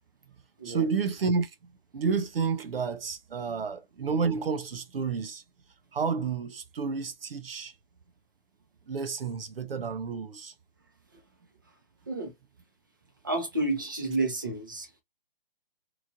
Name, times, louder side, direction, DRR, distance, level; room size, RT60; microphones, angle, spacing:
voice 1, 0.6-5.4 5.9-7.7 8.9-10.5, right 5 dB, 75° right, 0.6 m, -30 dB
voice 2, 13.2-15.0, right 2 dB, 20° right, 0.6 m, -30 dB
3.0 x 2.5 x 2.5 m
hypercardioid pair, 170°, 29 cm